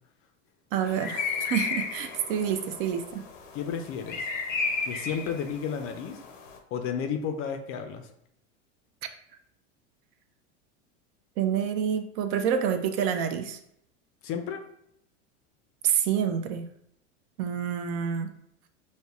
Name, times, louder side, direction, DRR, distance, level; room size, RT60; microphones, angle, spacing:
voice 1, 0.7-3.2 11.4-13.6 15.8-16.6 17.4-18.3, right 8 dB, 50° right, 8 dB, 0.5 m, -28 dB
sound 1, 0.9-6.6, left 5 dB, 85° left, 0.6 m, -34 dB
voice 2, 3.5-4.3 4.8-6.2 6.7-8.1 14.2-14.6, left 7 dB, 35° left, 6 dB, 0.4 m, -32 dB
5.1 x 2.1 x 2.3 m, 0.73 s
hypercardioid pair, 95°, 37 cm